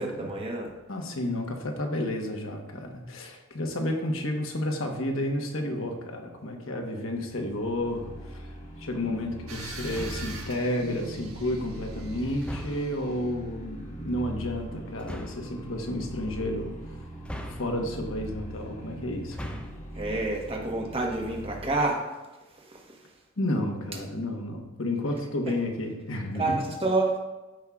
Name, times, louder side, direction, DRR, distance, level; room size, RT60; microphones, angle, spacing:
voice 1, 0.0-0.7 19.9-22.1 22.5-23.2 26.3-27.2, right 2 dB, 25° right, 0 dB, 1.3 m, -29 dB
voice 2, 0.9-17.0 17.6-19.7 23.4-26.6, left 1 dB, 65° left, 3 dB, 1.2 m, -31 dB
sound 1, 7.2-21.9, right 1 dB, 35° left, 1.4 m, -41 dB
sound 2, 9.5-13.3, right 4 dB, 80° right, 1.4 m, -45 dB
sound 3, 9.9-10.4 12.4-13.0 15.0-15.5 17.2-18.0 19.2-19.9, equal, 5° left, 0.5 m, -39 dB
13.5 x 5.5 x 2.4 m, 1.1 s
head